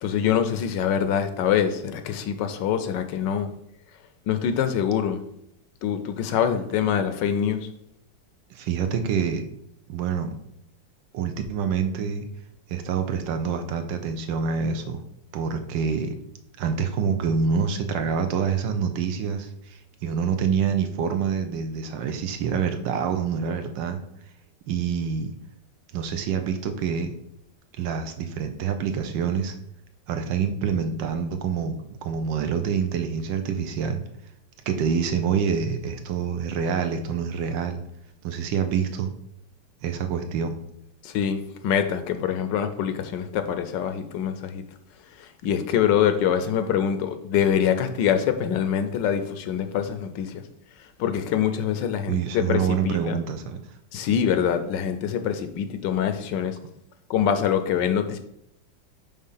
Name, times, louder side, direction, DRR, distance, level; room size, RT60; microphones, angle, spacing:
voice 1, 0.0-3.5 4.3-5.2 5.8-7.7 41.0-44.6 45.2-50.4 51.0-53.2 53.9-56.6 57.1-58.2, left 8 dB, 80° left, 8 dB, 1.2 m, -24 dB
voice 2, 8.5-9.4 9.9-10.3 11.1-12.3 12.7-15.0 15.3-16.2 16.6-24.0 24.7-25.3 25.9-27.2 27.8-29.5 30.1-34.0 34.7-37.8 38.2-39.1 39.8-40.6 52.1-53.6, right 6 dB, 75° right, 7 dB, 1.4 m, -26 dB
5.4 x 3.6 x 5.6 m, 0.74 s
omnidirectional pair, 2.0 m